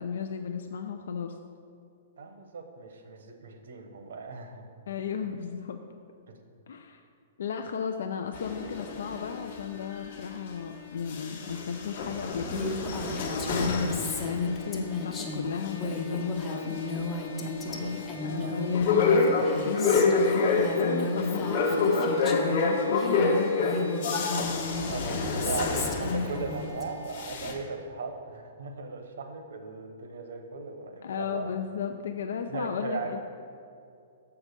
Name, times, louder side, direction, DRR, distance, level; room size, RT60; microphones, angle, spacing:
voice 1, 0.0-1.3 4.9-5.8 6.7-7.0 7.4-12.7 13.0-17.3 18.2-24.3 31.0-33.2, left 7 dB, 70° left, 5 dB, 0.4 m, -34 dB
voice 2, 2.2-4.6 17.3-17.9 18.4-18.6 24.9-31.5 32.5-33.2, right 4 dB, 80° right, 5 dB, 1.1 m, -38 dB
sound 1, 8.3-10.7 11.0-26.7 27.0-27.5, left 4 dB, 45° left, 1.0 m, -29 dB
Female speech woman speaking, 12.5-22.6 23.0-26.8, left 3 dB, 10° left, 0.6 m, -33 dB
7.3 x 4.8 x 6.7 m, 2.4 s
hypercardioid pair, 175°, 0 cm